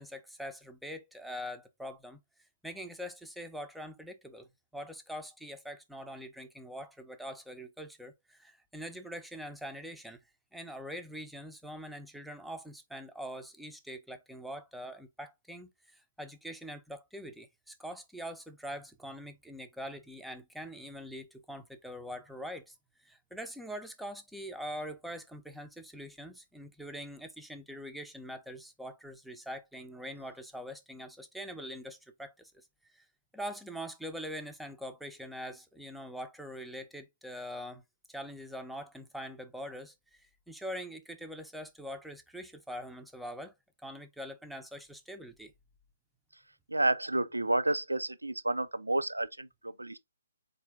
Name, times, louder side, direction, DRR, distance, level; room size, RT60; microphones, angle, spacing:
voice 1, 0.0-2.2 2.6-4.5 4.7-10.2 10.5-32.7 32.9-33.1 33.3-37.8 38.1-43.5 43.8-45.5, equal, ahead, 0.5 m, -43 dB
voice 2, 46.7-50.0, right 2 dB, 85° right, 0.4 m, -30 dB
4.2 x 2.6 x 3.4 m
figure-of-eight pair, 130°, 0 cm